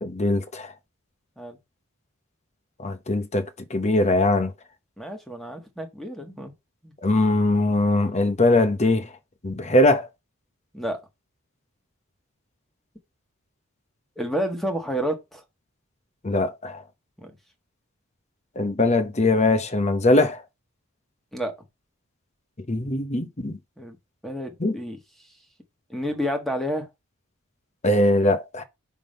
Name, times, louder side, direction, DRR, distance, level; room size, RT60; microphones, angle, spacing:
voice 1, 0.0-0.7 2.8-4.5 7.0-9.1 9.4-10.1 16.2-16.8 18.6-20.4 22.7-23.6 24.6-24.8 27.8-28.6, left 2 dB, 30° left, 0.9 m, -21 dB
voice 2, 5.0-6.5 6.8-6.9 10.7-11.0 14.2-15.4 17.2-17.3 21.3-21.5 23.8-24.0 24.2-25.0 25.9-26.9, equal, ahead, 1.4 m, -30 dB
6.0 x 3.7 x 5.2 m
head